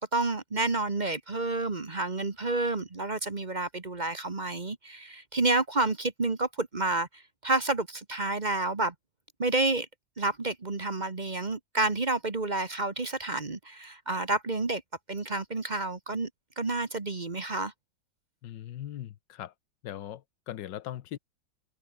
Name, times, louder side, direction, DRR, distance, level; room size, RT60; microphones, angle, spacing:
voice 1, 0.0-8.9 9.4-9.9 10.2-14.8 15.1-16.3 16.6-17.7, right 2 dB, 25° right, 1.2 m, -29 dB
voice 2, 18.4-19.5 19.8-21.2, left 12 dB, 70° left, 1.5 m, -40 dB
omnidirectional pair, 2.1 m